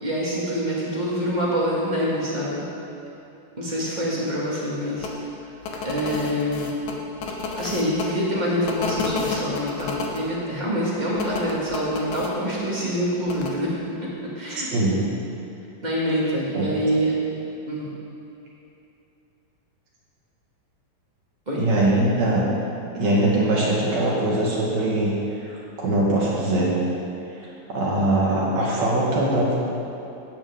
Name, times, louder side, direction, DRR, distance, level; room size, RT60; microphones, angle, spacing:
voice 1, 0.0-2.6 3.6-5.3 5.8-6.7 7.5-14.7 15.8-17.1 17.7-17.9 21.4-21.6, equal, 20° right, -6 dB, 1.4 m, -26 dB
sound 1, 5.0-5.1 5.6-8.0 8.7-10.2 11.2-12.3 13.3-13.5, left 4 dB, 70° left, 2.3 m, -30 dB
voice 2, 14.6-15.0 16.5-16.7 21.6-22.4 22.9-25.1 25.5-26.7 27.4-29.5, right 1 dB, 60° right, -6 dB, 3.3 m, -22 dB
15.0 x 8.9 x 3.6 m, 2.8 s
omnidirectional pair, 3.7 m